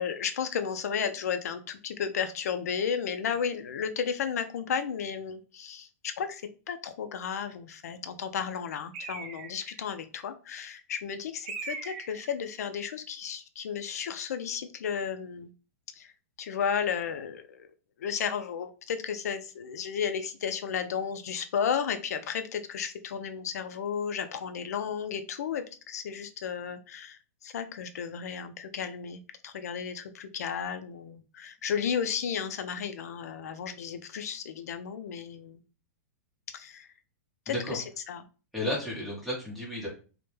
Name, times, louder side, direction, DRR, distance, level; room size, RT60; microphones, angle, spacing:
voice 1, 0.0-15.5 16.0-16.1 16.4-17.7 18.0-35.6 36.5-36.9 37.5-38.2 38.6-38.7, left 7 dB, 85° left, 9 dB, 0.4 m, -33 dB
Bird, 8.9-9.8 11.5-12.4, right 4 dB, 50° right, 0.5 m, -40 dB
voice 2, 37.5-37.8 38.5-39.9, left 1 dB, ahead, -6 dB, 0.8 m, -33 dB
2.1 x 2.0 x 3.0 m, 0.36 s
hypercardioid pair, 155°, 8 cm